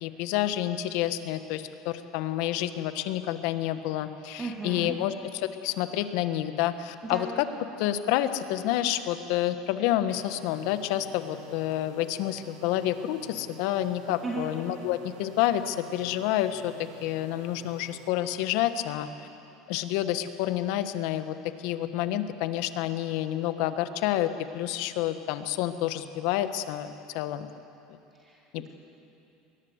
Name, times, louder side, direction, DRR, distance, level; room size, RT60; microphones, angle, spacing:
voice 1, 0.0-7.5 7.8-16.7 17.0-19.1 19.7-21.4 21.6-27.5 28.5-28.7, left 13 dB, 70° left, 11 dB, 1.2 m, -29 dB
voice 2, 4.4-4.9 7.0-7.3 14.2-14.5 28.2-28.7, right 2 dB, 20° right, -2 dB, 2.5 m, -35 dB
sound 1, 10.1-18.1, right 4 dB, 75° right, 2.5 m, -50 dB
22.0 x 19.0 x 8.0 m, 2.9 s
supercardioid pair, 115°, 0 cm